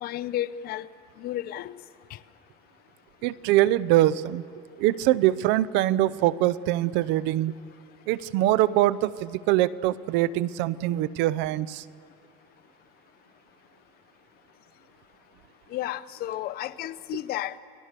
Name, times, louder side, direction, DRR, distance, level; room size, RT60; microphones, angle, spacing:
voice 1, 0.0-0.9 1.2-1.8 2.1-2.2 15.7-17.6, left 13 dB, 55° left, 15 dB, 0.7 m, -32 dB
voice 2, 3.2-4.4 4.8-7.5 8.1-11.8, right 15 dB, 75° right, 19 dB, 0.7 m, -23 dB
29.5 x 18.0 x 6.8 m, 2.4 s
cardioid pair, 120°, 19 cm